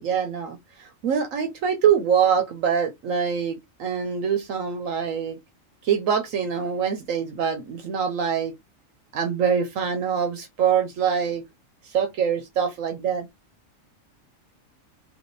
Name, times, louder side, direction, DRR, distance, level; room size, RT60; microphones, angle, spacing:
voice 1, 0.0-5.4 5.8-8.5 9.1-11.4 11.9-13.3, right 7 dB, 85° right, 1.2 m, -24 dB
3.5 x 2.7 x 3.9 m
omnidirectional pair, 1.3 m